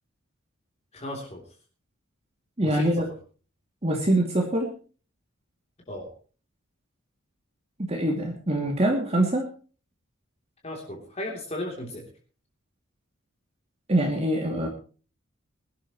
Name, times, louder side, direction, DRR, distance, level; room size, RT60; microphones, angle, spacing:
voice 1, 0.9-1.4 2.6-3.1 5.9-6.1 10.6-12.1, left 1 dB, 30° left, -1 dB, 3.3 m, -35 dB
voice 2, 2.6-3.0 3.8-4.7 7.9-9.5 13.9-14.7, right 1 dB, 30° right, 0 dB, 2.6 m, -24 dB
22.0 x 12.0 x 3.1 m, 0.37 s
head